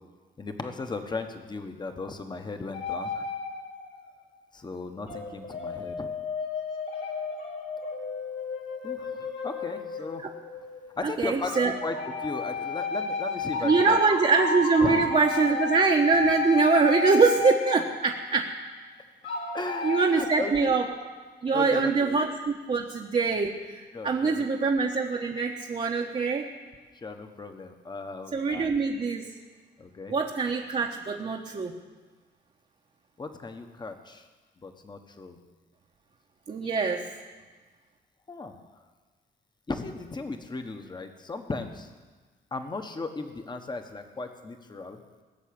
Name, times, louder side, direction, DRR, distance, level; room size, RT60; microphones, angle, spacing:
voice 1, 0.4-3.3 4.5-6.1 8.8-10.2 11.0-12.0 12.2-14.0 14.8-15.1 19.5-20.8 21.5-22.3 23.9-24.5 26.9-28.8 29.8-30.1 33.2-34.2 34.6-35.4 38.3-38.6 39.7-41.9 42.5-45.0, left 3 dB, 25° left, 6 dB, 1.2 m, -36 dB
sound 1, 2.7-4.1 5.1-11.0 11.5-18.6 19.2-20.6, left 4 dB, 75° left, 3.2 m, -32 dB
voice 2, 11.0-11.7 13.6-18.5 19.8-20.9 21.4-26.5 28.3-29.3 30.1-31.7 36.5-37.1, right 4 dB, 35° right, 0 dB, 1.1 m, -24 dB
19.5 x 7.2 x 8.7 m, 1.4 s
wide cardioid pair, 140°, 19 cm